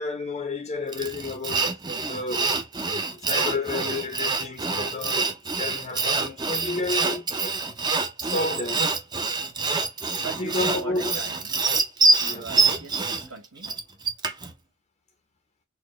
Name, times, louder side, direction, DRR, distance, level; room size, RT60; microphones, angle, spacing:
voice 1, 0.0-1.7 2.0-2.6 2.8-7.3 8.2-8.9 10.4-11.1 12.2-12.8, left 2 dB, 30° left, 0.6 m, -31 dB
Sawing, 0.9-14.5, right 3 dB, 20° right, 0.5 m, -25 dB
voice 2, 10.1-11.6 12.3-13.8, right 5 dB, 85° right, 1.6 m, -40 dB
4.1 x 2.1 x 3.0 m
head